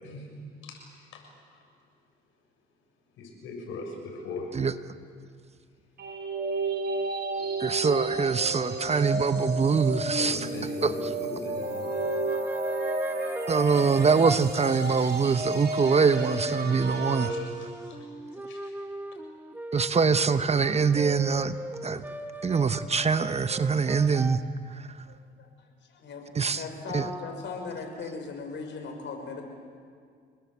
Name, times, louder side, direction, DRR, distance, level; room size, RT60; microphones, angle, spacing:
voice 1, 0.6-1.2 1.5-1.6 3.2-4.5 10.2-12.0 16.8-18.1 18.5-18.7, left 3 dB, 90° left, 1 dB, 7.0 m, -40 dB
sound 1, 6.0-17.3, right 2 dB, 55° right, 6.4 m, -32 dB
voice 2, 7.6-10.5 10.8-10.9 13.5-17.3 19.7-21.6 21.8-22.0 22.4-24.4 24.7-24.9 26.3-26.6 26.9-27.1, right 5 dB, 30° right, 11 dB, 1.0 m, -24 dB
sound 2, 11.6-14.4 16.3-24.4, right 1 dB, 10° right, 1.4 m, -37 dB
voice 3, 25.1-29.4, left 4 dB, 70° left, 3 dB, 6.1 m, -39 dB
28.0 x 21.0 x 8.2 m, 2.1 s
cardioid pair, 90°, 20 cm